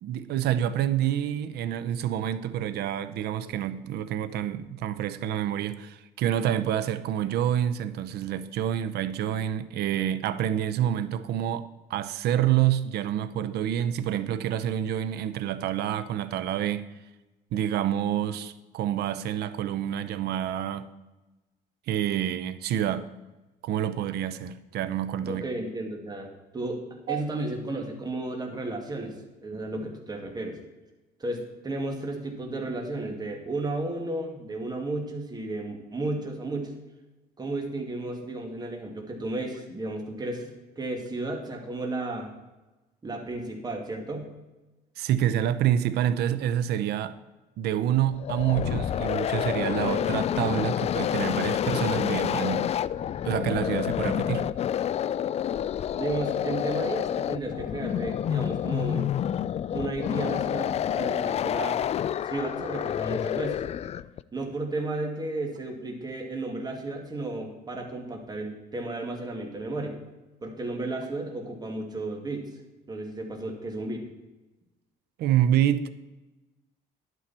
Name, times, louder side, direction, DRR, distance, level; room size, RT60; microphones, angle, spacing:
voice 1, 0.0-16.9 17.5-20.9 21.9-23.1 23.6-25.4 27.1-27.2 45.0-47.2 47.6-52.7 53.2-54.5 75.2-75.9, right 10 dB, 75° right, 13 dB, 0.7 m, -27 dB
voice 2, 25.3-26.8 27.1-29.2 29.4-30.6 31.2-36.7 37.4-42.3 43.0-44.3 56.0-59.1 59.7-61.8 62.3-63.6 64.3-69.9 70.4-72.5 72.9-74.0, right 2 dB, 25° right, 2 dB, 2.3 m, -33 dB
sound 1, 48.1-64.2, left 10 dB, 40° left, 0.4 m, -28 dB
11.0 x 9.1 x 4.3 m, 1.1 s
cardioid pair, 110°, 17 cm